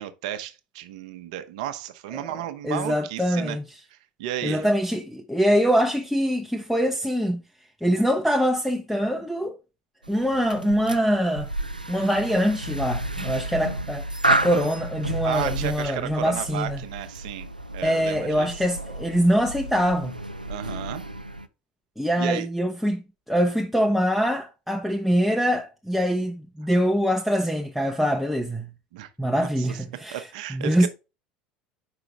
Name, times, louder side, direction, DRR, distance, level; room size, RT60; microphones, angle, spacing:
voice 1, 0.0-3.6 3.9-4.7 15.2-17.5 17.7-18.6 20.5-21.1 22.2-22.5 28.9-29.1 29.6-29.8 30.1-30.9, right 12 dB, 60° right, 0.7 m, -33 dB
voice 2, 2.6-3.6 4.4-7.4 7.8-9.6 10.1-11.5 11.9-16.8 17.8-20.2 22.0-23.0 23.3-28.7 29.2-30.2 30.5-30.9, equal, ahead, 0.7 m, -24 dB
sound 1, 10.0-21.5, right 1 dB, 90° right, 0.4 m, -31 dB
4.9 x 4.8 x 4.5 m
figure-of-eight pair, 70°, 4 cm